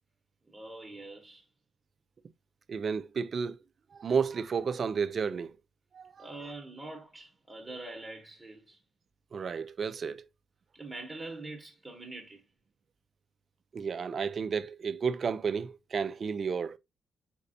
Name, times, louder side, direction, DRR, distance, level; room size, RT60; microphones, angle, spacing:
voice 1, 0.5-1.4 6.2-8.8 10.7-12.4, right 2 dB, 15° right, 1.0 m, -44 dB
voice 2, 2.7-3.6 3.9-5.6 5.9-6.3 9.3-10.3 13.7-16.8, right 6 dB, 45° right, 0.4 m, -32 dB
4.2 x 4.0 x 2.5 m
cardioid pair, 90°, 0 cm